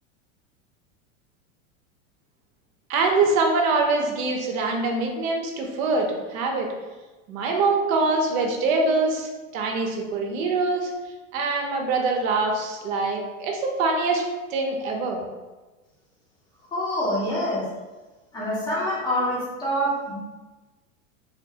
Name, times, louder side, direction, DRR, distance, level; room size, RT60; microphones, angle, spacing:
voice 1, 2.9-6.7 7.3-10.9 11.3-14.2 14.5-15.2, right 3 dB, 75° right, 2 dB, 0.7 m, -24 dB
voice 2, 16.7-17.6 18.3-20.1, equal, 10° left, -7 dB, 0.5 m, -26 dB
2.9 x 2.2 x 2.7 m, 1.2 s
supercardioid pair, 150°, 41 cm